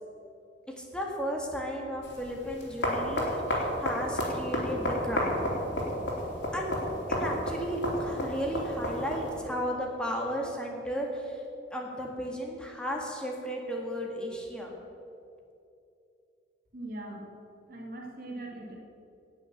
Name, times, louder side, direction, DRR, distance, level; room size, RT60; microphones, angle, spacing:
voice 1, 0.7-5.5 6.5-6.8 7.1-11.4 11.7-14.7, equal, 5° left, -1 dB, 1.8 m, -34 dB
sound 1, 2.0-9.4, equal, 70° left, 3.5 m, -32 dB
voice 2, 16.7-17.3 17.7-18.8, right 1 dB, 55° right, 0 dB, 2.2 m, -40 dB
17.5 x 6.8 x 7.2 m, 2.6 s
head